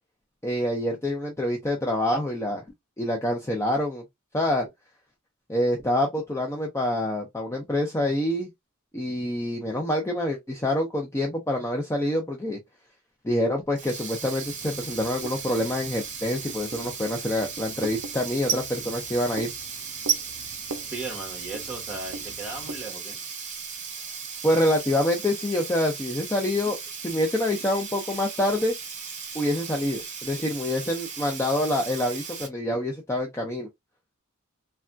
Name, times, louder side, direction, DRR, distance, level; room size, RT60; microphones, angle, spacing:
voice 1, 0.4-2.6 3.0-4.0 4.3-4.7 5.5-8.5 8.9-12.6 13.2-19.5 24.4-26.8 27.0-28.7 29.3-33.7, left 1 dB, 15° left, 0.5 m, -26 dB
Sink (filling or washing), 13.6-32.5, right 5 dB, 35° right, 1.1 m, -37 dB
Writing, 14.4-22.9, right 6 dB, 65° right, 0.5 m, -36 dB
voice 2, 20.9-23.2, right 3 dB, 5° right, 1.3 m, -36 dB
3.4 x 2.2 x 2.5 m
head